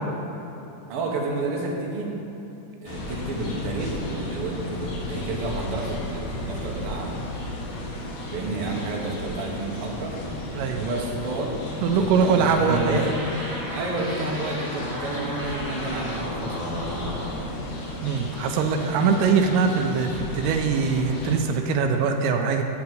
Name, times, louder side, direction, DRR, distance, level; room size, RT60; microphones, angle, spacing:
voice 1, 0.9-2.1 2.8-7.1 8.3-10.2 10.7-13.1 13.7-17.0, right 2 dB, 55° right, -1 dB, 1.7 m, -30 dB
sound 1, 2.9-21.4, left 1 dB, 75° left, 2.8 m, -34 dB
voice 2, 11.8-13.0 18.0-22.6, right 5 dB, 85° right, 5 dB, 2.2 m, -22 dB
sound 2, 12.6-17.5, equal, 15° right, 0.8 m, -34 dB
7.4 x 5.8 x 7.6 m, 3.0 s
omnidirectional pair, 3.7 m